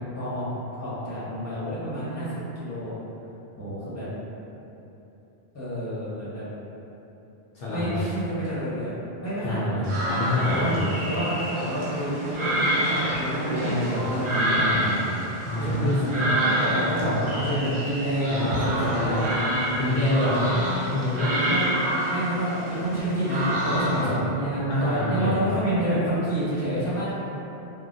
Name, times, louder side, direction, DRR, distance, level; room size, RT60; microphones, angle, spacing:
voice 1, 0.1-0.5 0.8-2.9 3.6-4.1 5.5-6.4 7.7-8.9 9.2-9.8 10.5-15.0 15.6-19.4 21.4-21.7 22.0-27.1, equal, 15° left, -11 dB, 0.8 m, -28 dB
voice 2, 7.5-8.1 8.4-8.5 9.4-10.8 15.4-16.1 17.0-17.2 18.3-18.5 18.8-19.3 19.7-21.5 23.9-24.1 24.7-25.4, left 1 dB, 65° left, -9 dB, 0.8 m, -27 dB
sound 1, 9.8-24.1, right 1 dB, 40° right, 0.5 m, -28 dB
3.4 x 2.1 x 2.6 m, 3.0 s
omnidirectional pair, 1.1 m